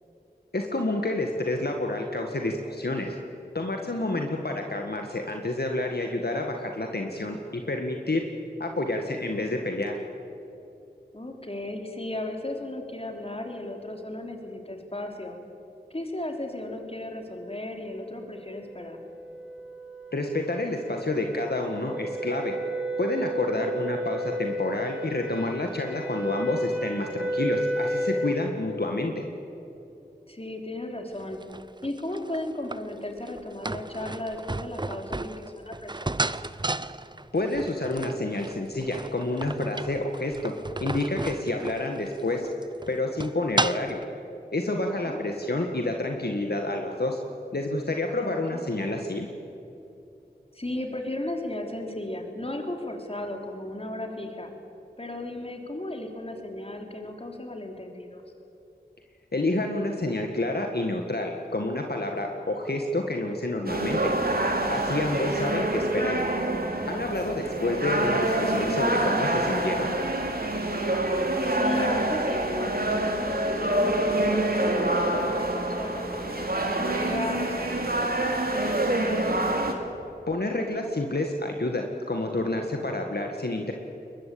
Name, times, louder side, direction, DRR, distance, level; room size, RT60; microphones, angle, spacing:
voice 1, 0.5-3.2 3.5-8.2 8.6-10.0 20.1-22.6 23.0-29.1 37.3-40.5 40.8-42.5 42.9-44.0 44.5-47.2 47.5-49.3 59.3-64.1 64.7-66.2 66.9-69.9 80.3-83.7, left 2 dB, 65° left, 3 dB, 1.8 m, -29 dB
voice 2, 3.9-4.3 11.1-15.4 15.9-19.0 23.4-23.7 30.3-31.4 31.8-36.1 44.9-45.2 48.2-48.6 50.5-54.5 55.0-58.2 71.5-78.3, left 1 dB, 35° left, 3 dB, 3.6 m, -35 dB
sound 1, 18.5-28.5, right 1 dB, 5° right, 3.3 m, -32 dB
sound 2, 31.2-44.0, right 2 dB, 25° right, 0.7 m, -33 dB
sound 3, 63.7-79.7, right 1 dB, 60° right, 2.9 m, -26 dB
22.0 x 21.5 x 8.7 m, 2.9 s
wide cardioid pair, 45°, 18 cm